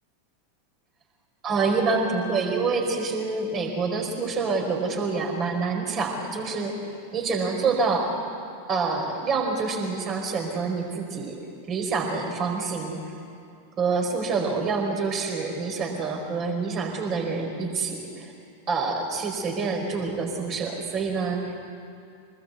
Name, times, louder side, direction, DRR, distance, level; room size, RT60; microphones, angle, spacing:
voice 1, 1.4-8.1 8.7-11.4 11.7-13.1 13.8-18.3 18.7-21.5, right 4 dB, 30° right, 3 dB, 5.0 m, -27 dB
25.5 x 20.0 x 8.0 m, 2.4 s
figure-of-eight pair, 90°, 0 cm